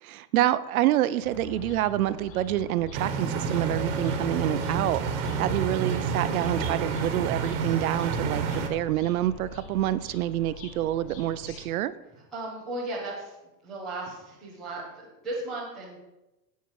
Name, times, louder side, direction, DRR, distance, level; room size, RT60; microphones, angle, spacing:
voice 1, 0.0-11.9, right 13 dB, 60° right, 15 dB, 0.6 m, -27 dB
sound 1, 1.2-11.7, left 2 dB, 75° left, 4.5 m, -45 dB
sound 2, 2.9-8.7, right 5 dB, 40° right, 1.2 m, -29 dB
voice 2, 12.1-16.0, right 2 dB, ahead, -11 dB, 0.4 m, -36 dB
16.5 x 5.7 x 4.7 m, 0.97 s
supercardioid pair, 175°, 48 cm